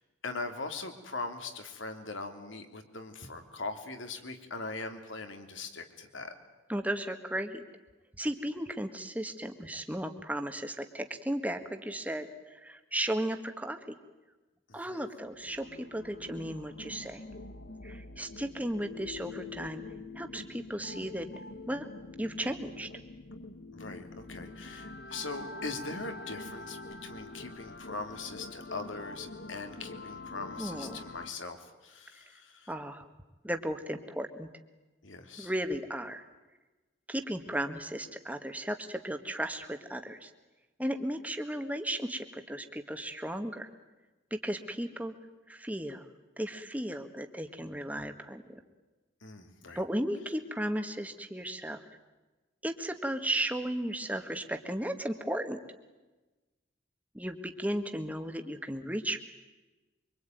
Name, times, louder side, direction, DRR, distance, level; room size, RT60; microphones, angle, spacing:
voice 1, 0.2-6.3 14.7-15.0 23.7-32.7 35.0-35.5 49.2-49.8, left 3 dB, 75° left, 7 dB, 3.0 m, -41 dB
voice 2, 6.7-7.6 8.2-13.9 14.7-17.2 17.8-19.8 20.1-21.3 21.7-21.9 22.2-22.9 30.6-31.1 32.7-33.1 33.4-34.5 35.4-36.3 37.1-40.3 40.8-43.7 44.3-45.1 45.5-46.1 46.4-48.6 49.7-51.8 52.6-55.6 57.1-59.2, right 1 dB, 10° right, 7 dB, 1.6 m, -35 dB
sound 1, 15.3-31.3, left 3 dB, 55° left, 1.4 m, -45 dB
25.0 x 24.5 x 9.3 m, 1.2 s
head